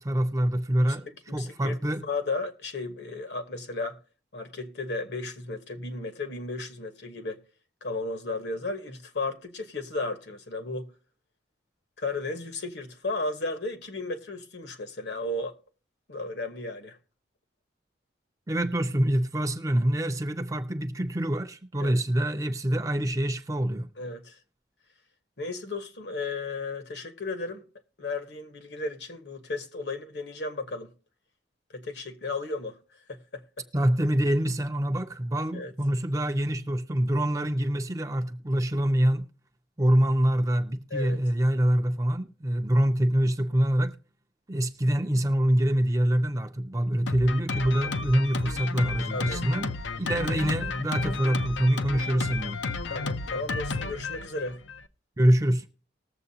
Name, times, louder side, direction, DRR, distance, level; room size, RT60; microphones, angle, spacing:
voice 1, 0.0-2.1 18.5-23.9 33.7-39.3 39.8-44.0 44.5-52.6 55.2-55.7, right 1 dB, 15° right, 0.5 m, -25 dB
voice 2, 1.3-4.0 4.3-7.4 7.8-10.9 12.0-15.6 16.1-17.0 21.8-22.0 24.0-24.4 25.4-27.6 28.0-30.9 31.7-32.8 33.1-33.6 35.5-35.7 40.9-41.2 49.1-49.4 52.9-54.6, left 3 dB, 65° left, 1.2 m, -34 dB
Drum kit, 47.1-54.9, left 3 dB, 80° left, 0.6 m, -32 dB
19.5 x 7.2 x 2.8 m
head